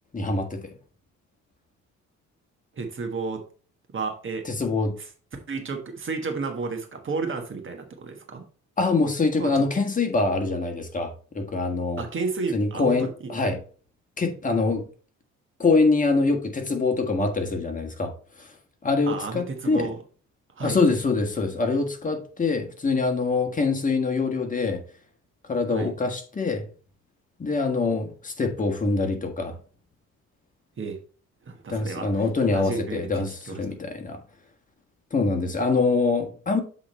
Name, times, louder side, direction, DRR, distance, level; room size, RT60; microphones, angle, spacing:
voice 1, 0.1-0.7 4.4-4.9 8.8-12.0 12.5-13.6 14.2-14.8 15.6-18.5 18.8-19.9 20.6-24.8 25.5-26.6 27.4-29.6 31.7-34.2 35.1-36.6, left 3 dB, 25° left, 1.5 m, -24 dB
voice 2, 2.7-3.4 3.9-4.4 5.0-5.1 5.5-8.4 9.4-9.6 12.0-13.3 19.1-20.0 20.6-20.8 25.7-25.9 30.8-31.0 31.4-32.2 32.5-33.6, right 4 dB, 40° right, 1.4 m, -32 dB
7.7 x 3.7 x 4.2 m
cardioid pair, 90°, 30 cm